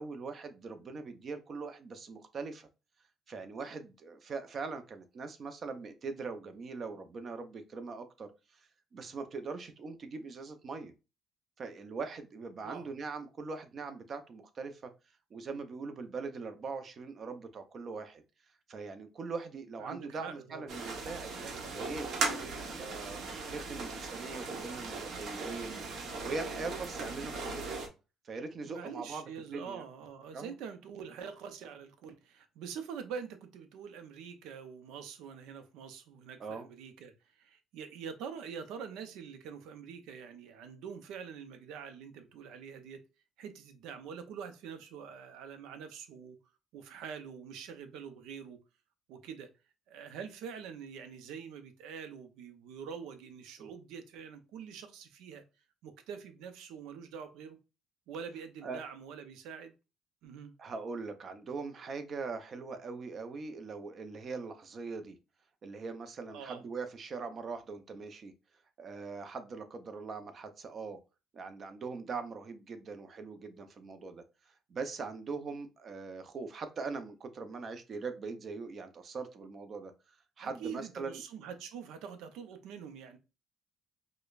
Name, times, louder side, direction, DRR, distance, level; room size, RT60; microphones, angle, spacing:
voice 1, 0.0-2.7 3.3-10.9 11.6-14.9 15.3-18.2 18.7-23.2 23.5-25.8 26.2-27.7 28.2-29.8 30.3-30.5 36.4-36.7 53.6-53.7 58.6-58.8 60.6-65.2 65.6-68.3 68.8-71.0 71.3-74.2 74.7-79.9 80.4-81.2, right 4 dB, 40° right, 0.6 m, -41 dB
voice 2, 19.8-20.7 28.6-43.0 43.4-46.4 46.7-48.6 49.1-49.5 49.9-55.4 55.8-57.6 58.1-59.7 60.2-60.5 66.3-66.6 80.4-83.2, right 7 dB, 90° right, 0.6 m, -45 dB
sound 1, 20.7-27.9, right 3 dB, 60° right, 0.9 m, -38 dB
4.9 x 2.1 x 2.3 m
cardioid pair, 120°, 0 cm